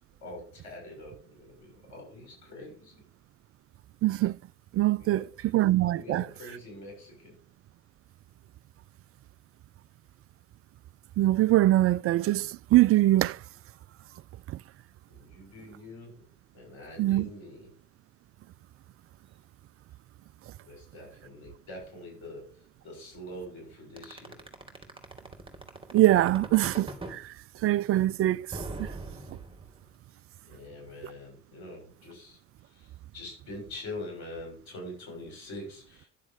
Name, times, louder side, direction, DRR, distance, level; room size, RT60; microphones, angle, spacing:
voice 1, 0.2-3.0 4.9-5.5 5.9-7.3 15.1-16.3 16.5-17.7 19.3-19.4 20.6-24.4 30.5-36.1, left 1 dB, 80° left, 7.0 m, -44 dB
voice 2, 4.0-4.4 4.7-5.3 5.5-6.2 11.2-13.4 17.0-17.3 25.9-27.3 27.6-28.9, right 15 dB, 45° right, 0.4 m, -23 dB
sound 1, 24.0-27.2 28.5-29.9, right 2 dB, 15° right, 3.0 m, -40 dB
11.0 x 7.2 x 4.9 m
hypercardioid pair, 65°, 34 cm